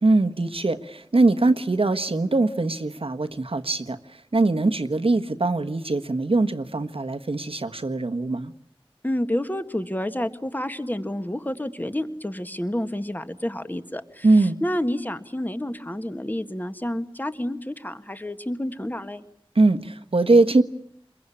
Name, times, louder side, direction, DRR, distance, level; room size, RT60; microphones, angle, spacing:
voice 1, 0.0-4.0 4.3-8.5 14.2-14.5 19.5-20.6, right 2 dB, 75° right, 8 dB, 1.4 m, -21 dB
voice 2, 9.0-19.2, left 1 dB, 20° left, 9 dB, 1.8 m, -29 dB
28.5 x 22.5 x 8.6 m, 0.67 s
wide cardioid pair, 55°, 10 cm